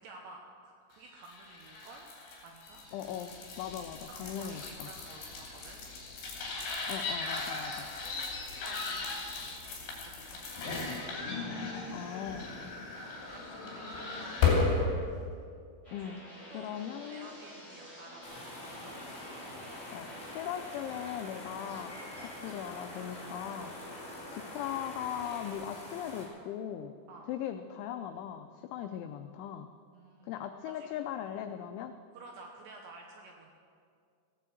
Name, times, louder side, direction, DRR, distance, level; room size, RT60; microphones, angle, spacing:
voice 1, 0.0-2.1 2.4-2.8 4.2-5.8 7.8-11.1 11.4-12.4 13.0-15.3 16.5-19.0 22.1-22.2 23.9-24.1 27.1-27.3 29.9-31.2 32.1-33.5, right 3 dB, 75° right, 1 dB, 2.7 m, -53 dB
sound 1, 1.2-14.8, left 4 dB, 55° left, 4.9 m, -35 dB
voice 2, 2.9-4.9 6.9-7.9 11.9-12.5 15.9-16.2 16.5-17.4 19.9-27.0 27.3-29.7 30.2-31.9, left 10 dB, 90° left, 8 dB, 2.6 m, -39 dB
sound 2, 15.8-25.5, equal, 5° right, 4.1 m, -49 dB
sound 3, 18.2-26.3, left 1 dB, 20° left, 2.9 m, -46 dB
16.0 x 10.0 x 7.7 m, 2.2 s
omnidirectional pair, 6.0 m